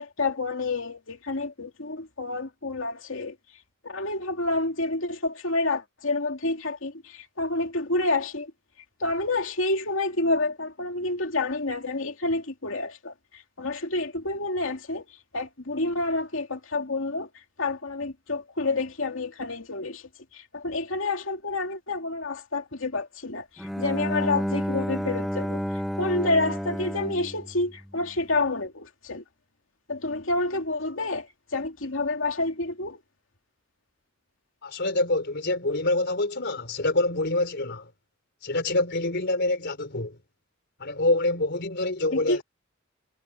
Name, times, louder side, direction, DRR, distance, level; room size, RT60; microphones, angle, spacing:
voice 1, 0.0-3.4 3.8-8.5 9.0-15.0 15.3-17.3 17.6-25.6 26.0-29.2 29.9-33.0 42.1-42.4, left 2 dB, 75° left, 2.7 m, -29 dB
Bowed string instrument, 23.6-28.4, equal, ahead, 1.7 m, -31 dB
voice 2, 34.6-37.9 38.4-40.2 40.8-42.4, left 2 dB, 60° left, 4.4 m, -26 dB
head